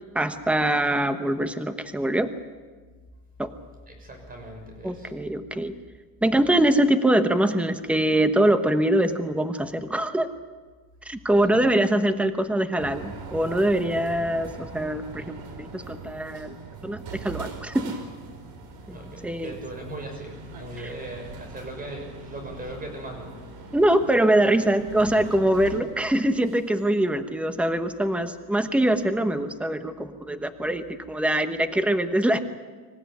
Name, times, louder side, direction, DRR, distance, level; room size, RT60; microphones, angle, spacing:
voice 1, 0.1-2.3 3.4-3.5 4.8-5.7 6.2-10.3 11.0-16.5 16.8-18.0 18.9-19.0 19.2-19.5 20.8-20.9 23.7-32.4, right 1 dB, 5° right, 9 dB, 1.1 m, -23 dB
voice 2, 3.9-5.1 18.9-23.4, right 1 dB, 20° right, 3 dB, 6.4 m, -38 dB
sound 1, 12.8-27.4, right 4 dB, 65° right, 4.8 m, -42 dB
25.5 x 16.0 x 9.4 m, 1.4 s
cardioid pair, 150°, 39 cm